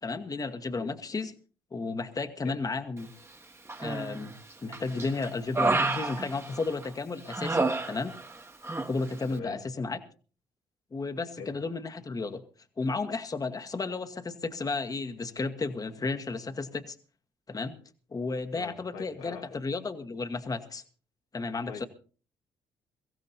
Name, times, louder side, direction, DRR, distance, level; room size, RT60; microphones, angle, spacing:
voice 1, 0.0-1.3 1.7-3.1 3.8-4.3 4.6-8.2 8.9-10.0 10.9-12.4 12.8-16.9 17.5-17.8 18.1-20.8 21.3-21.8, left 3 dB, 30° left, 1.3 m, -33 dB
Human voice, 3.7-4.3 4.7-6.9 7.3-8.4 8.6-8.9, right 3 dB, 25° right, 1.5 m, -29 dB
voice 2, 9.3-9.6 11.4-11.5 18.5-19.6 21.6-21.9, left 6 dB, 80° left, 1.7 m, -43 dB
23.0 x 15.5 x 2.7 m
hypercardioid pair, 50°, 11 cm